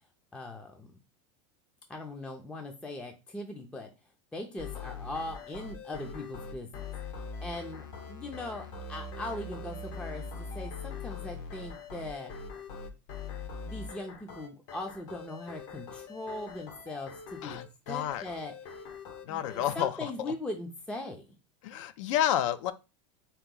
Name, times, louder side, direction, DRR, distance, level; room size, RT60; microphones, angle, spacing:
voice 1, 0.3-0.9 1.9-3.9 4.3-6.9 7.4-12.3 13.7-17.6 17.9-18.5 19.3-21.3, left 2 dB, 5° left, 0.4 m, -40 dB
sound 1, 4.6-19.9, left 4 dB, 60° left, 0.9 m, -42 dB
voice 2, 17.4-18.2 19.2-20.3 21.6-22.7, left 11 dB, 75° left, 0.5 m, -30 dB
3.4 x 2.9 x 3.7 m
supercardioid pair, 145°, 16 cm